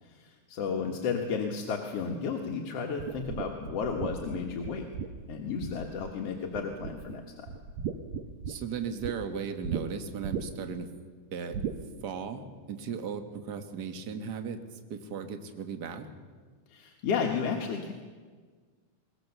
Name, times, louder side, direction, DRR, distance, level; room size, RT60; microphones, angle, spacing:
voice 1, 0.1-4.8 5.3-7.5 16.7-17.9, left 5 dB, 60° left, 1 dB, 2.3 m, -33 dB
sound 1, 3.0-6.2 6.5-7.2 7.5-9.2 9.6-9.8 10.2-10.7 11.5-11.8, right 7 dB, 65° right, 2.2 m, -36 dB
voice 2, 8.5-10.9 11.3-11.6 12.0-14.6 14.9-16.1, right 6 dB, 45° right, 6 dB, 1.6 m, -36 dB
22.0 x 20.5 x 6.8 m, 1.5 s
omnidirectional pair, 3.5 m